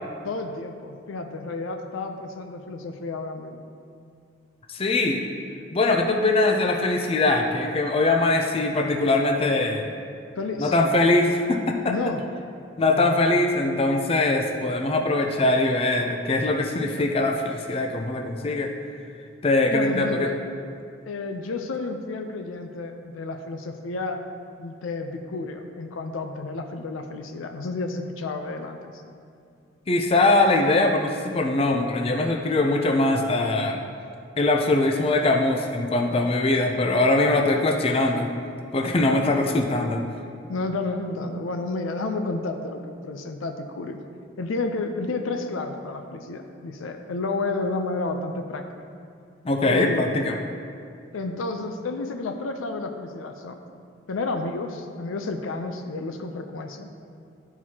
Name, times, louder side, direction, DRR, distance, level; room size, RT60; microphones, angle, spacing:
voice 1, 0.2-3.6 10.3-10.8 11.9-12.2 12.8-13.3 19.7-20.4 21.1-24.2 24.6-28.8 40.5-44.0 44.4-48.7 49.7-50.2 51.1-53.6 54.1-56.9, left 3 dB, 90° left, 5 dB, 0.5 m, -31 dB
voice 2, 4.7-5.2 5.7-9.9 10.6-11.9 12.8-18.7 19.4-20.3 29.9-33.8 34.4-38.3 38.7-40.0 49.5-50.4, left 2 dB, 30° left, 3 dB, 0.4 m, -22 dB
11.5 x 4.6 x 2.8 m, 2.4 s
head